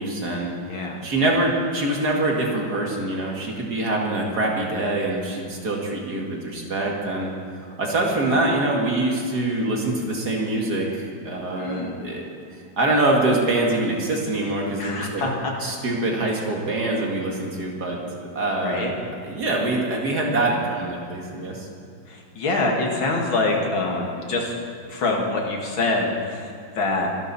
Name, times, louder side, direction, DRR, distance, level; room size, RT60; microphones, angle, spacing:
voice 1, 0.0-0.5 1.0-7.3 7.6-12.2 12.8-15.2 15.6-18.9 19.2-21.7, right 2 dB, 50° right, -1 dB, 2.6 m, -24 dB
voice 2, 0.7-1.0 11.6-12.0 14.8-15.5 18.6-18.9 22.1-24.5 24.9-26.5 26.8-27.1, left 2 dB, 80° left, 0 dB, 2.9 m, -25 dB
25.0 x 11.5 x 4.3 m, 2.4 s
omnidirectional pair, 2.2 m